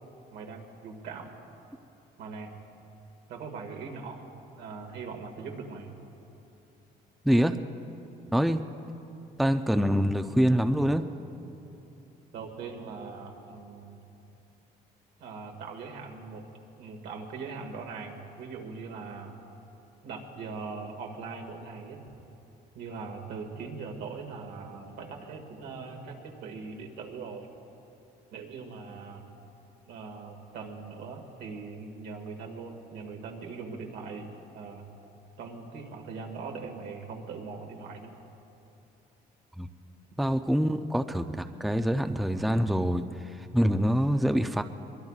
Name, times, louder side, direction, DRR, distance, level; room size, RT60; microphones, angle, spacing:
voice 1, 0.3-1.3 2.2-2.5 3.3-4.2 4.6-5.9 12.3-14.1 15.2-16.5 16.8-19.4 20.0-22.0 22.7-27.5 28.3-29.3 29.9-34.3 34.5-34.9 35.4-38.1, right 4 dB, 80° right, 2 dB, 1.9 m, -41 dB
voice 2, 7.2-7.6 8.3-8.6 9.4-11.0 39.6-39.7 40.2-44.6, equal, ahead, 7 dB, 0.5 m, -25 dB
23.0 x 22.0 x 2.4 m, 2.9 s
cardioid pair, 110°, 17 cm